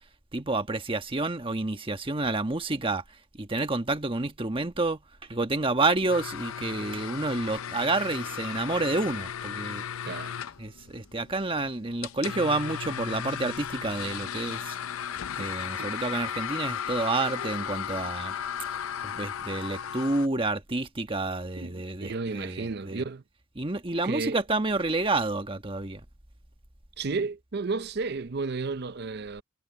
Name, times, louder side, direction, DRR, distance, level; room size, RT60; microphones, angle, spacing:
voice 1, 0.3-3.0 3.4-5.0 5.3-9.8 10.6-14.7 15.4-18.3 19.0-23.0 23.6-26.0, right 2 dB, 25° right, 1.3 m, -29 dB
sound 1, 6.1-20.3, left 8 dB, 75° left, 0.6 m, -35 dB
voice 2, 21.6-23.2 24.0-24.4 27.0-29.4, right 4 dB, 50° right, 0.6 m, -32 dB
head